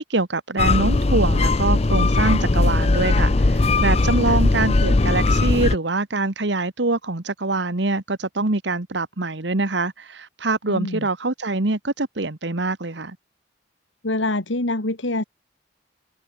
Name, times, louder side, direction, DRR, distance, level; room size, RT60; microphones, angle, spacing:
voice 1, 0.0-13.2, right 2 dB, 65° right, 1.5 m, -24 dB
sound 1, 0.6-5.8, left 2 dB, 35° left, 0.6 m, -19 dB
voice 2, 10.7-11.1 14.0-15.2, left 2 dB, 75° left, 2.5 m, -25 dB
head